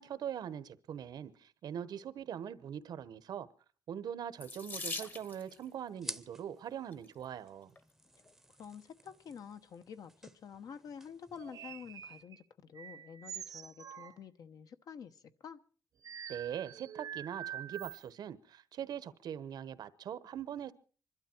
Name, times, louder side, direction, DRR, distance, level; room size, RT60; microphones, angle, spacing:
voice 1, 0.0-3.5 3.9-7.7 16.3-20.7, right 9 dB, 85° right, 1.0 m, -42 dB
Water tap faucet / Sink (filling or washing), 4.4-5.6 6.7-7.1 7.8-7.9 8.2-8.3, left 3 dB, 30° left, 1.1 m, -42 dB
sound 1, 4.6-12.2, right 1 dB, 5° right, 0.7 m, -52 dB
voice 2, 8.6-15.6, left 7 dB, 70° left, 1.0 m, -49 dB
sound 2, 11.3-12.4 12.7-14.2 16.0-18.0, right 9 dB, 60° right, 0.8 m, -46 dB
25.5 x 12.0 x 4.4 m
wide cardioid pair, 175°, 7 cm